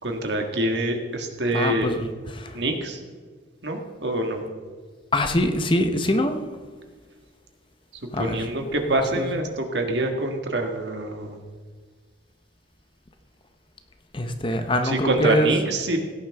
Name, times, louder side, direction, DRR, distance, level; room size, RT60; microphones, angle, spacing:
voice 1, 0.0-2.1 2.5-3.0 3.6-4.4 8.2-11.4 14.8-16.1, right 1 dB, 60° right, 4 dB, 1.6 m, -25 dB
voice 2, 1.5-1.9 5.1-6.4 8.2-8.4 14.1-15.5, left 1 dB, 25° left, 7 dB, 0.8 m, -23 dB
17.0 x 10.0 x 3.5 m, 1.5 s
head